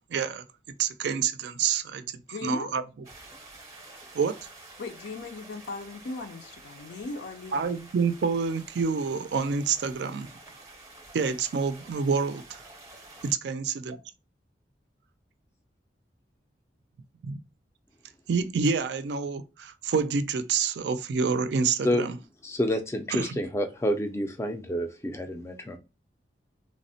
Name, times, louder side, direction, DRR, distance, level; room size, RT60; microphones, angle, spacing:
voice 1, 0.1-0.4 0.8-2.8 4.1-4.4 7.5-10.3 11.1-12.6 13.2-14.0 17.2-17.4 18.3-22.2 23.1-23.4, right 5 dB, 70° right, 0.3 m, -28 dB
voice 2, 2.3-2.8 4.8-7.8, left 3 dB, 75° left, 0.4 m, -38 dB
sound 1, 3.0-13.3, right 2 dB, 20° right, 0.6 m, -49 dB
voice 3, 22.4-25.8, equal, 15° left, 0.3 m, -28 dB
3.2 x 2.0 x 2.6 m
head